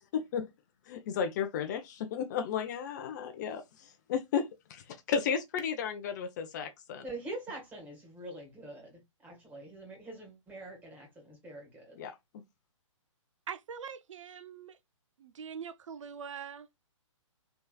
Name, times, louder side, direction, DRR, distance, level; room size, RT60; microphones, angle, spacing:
voice 1, 0.1-0.5 0.9-7.0 12.0-12.4, left 7 dB, 35° left, 0.5 m, -34 dB
voice 2, 7.0-12.0, right 2 dB, 10° right, 1.5 m, -44 dB
voice 3, 13.5-14.8 15.2-16.7, right 7 dB, 65° right, 0.5 m, -43 dB
3.3 x 3.1 x 2.2 m
hypercardioid pair, 140°, 17 cm